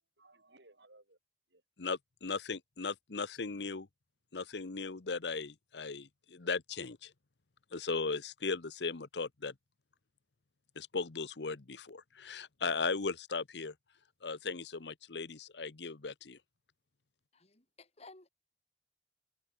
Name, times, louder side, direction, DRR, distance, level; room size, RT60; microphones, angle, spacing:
voice 1, 0.2-1.2 1.5-1.6, right 2 dB, 80° right, 7.1 m, -61 dB
voice 2, 1.8-3.9 4.3-7.1 7.7-9.5 10.8-13.7 14.2-16.4, left 4 dB, 75° left, 1.0 m, -37 dB
voice 3, 17.3-18.3, left 3 dB, 35° left, 2.8 m, -56 dB
head